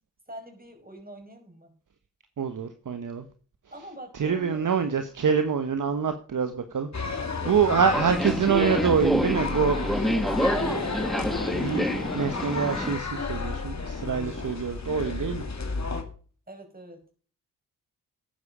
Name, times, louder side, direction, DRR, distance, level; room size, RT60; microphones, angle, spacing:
voice 1, 0.3-1.7 3.7-4.6 7.1-7.9 16.5-17.0, right 1 dB, 20° right, 5.0 m, -44 dB
voice 2, 2.4-3.2 4.1-7.1 7.4-9.8 10.4-15.5, right 6 dB, 55° right, 1.1 m, -26 dB
sound 1, 6.9-16.0, left 4 dB, 45° left, 2.5 m, -31 dB
Subway metro underground, 7.9-12.9, equal, ahead, 1.0 m, -28 dB
12.0 x 9.7 x 4.9 m
supercardioid pair, 40°, 39 cm